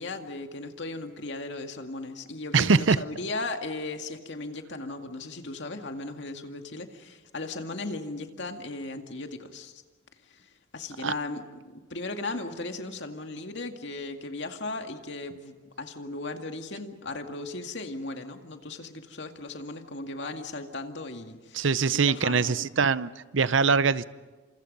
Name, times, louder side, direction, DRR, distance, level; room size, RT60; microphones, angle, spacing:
voice 1, 0.0-9.8 10.2-21.7 21.9-22.7, left 2 dB, 65° left, 5 dB, 2.2 m, -37 dB
voice 2, 2.5-3.0 11.0-11.1 21.5-24.0, right 5 dB, 80° right, 16 dB, 0.7 m, -23 dB
30.0 x 27.5 x 5.5 m, 1.3 s
head